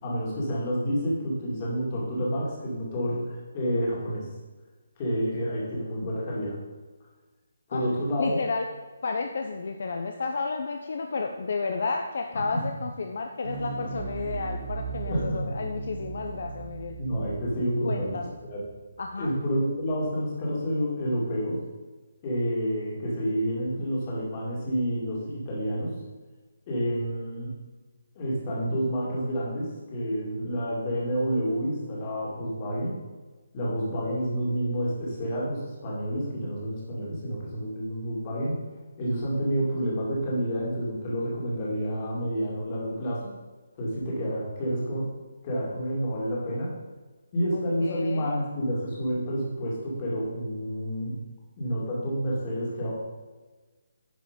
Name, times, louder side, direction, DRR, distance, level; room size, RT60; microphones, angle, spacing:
voice 1, 0.0-4.3 5.0-6.6 7.7-8.4 12.3-12.6 15.0-15.4 17.0-18.1 18.5-18.6 19.2-21.6 22.2-26.0 26.7-27.5 28.2-33.0 33.5-38.6 39.0-43.3 43.8-45.1 45.4-46.7 47.3-51.2 51.6-52.9, equal, 20° left, -4 dB, 2.2 m, -29 dB
voice 2, 8.2-8.6 9.0-17.0 17.8-18.3 19.0-19.3 47.8-48.3, left 4 dB, 50° left, 4 dB, 0.7 m, -31 dB
sound 1, 13.4-19.9, right 4 dB, 65° right, 1.9 m, -38 dB
10.0 x 5.1 x 5.1 m, 1.3 s
hypercardioid pair, 175°, 0 cm